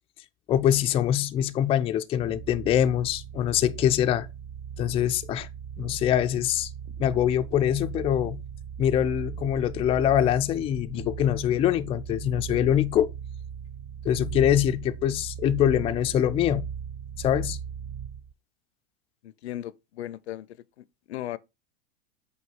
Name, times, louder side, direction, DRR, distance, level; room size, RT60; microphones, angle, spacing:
voice 1, 0.5-4.3 4.8-5.5 5.8-6.7 7.0-8.4 8.8-13.1 14.0-16.7 17.2-17.6, left 11 dB, 20° left, 0.3 m, -24 dB
sound 1, 2.2-18.3, right 8 dB, 40° right, 0.6 m, -38 dB
voice 2, 19.2-21.4, left 13 dB, 75° left, 0.6 m, -37 dB
7.9 x 2.7 x 4.6 m
hypercardioid pair, 100°, 33 cm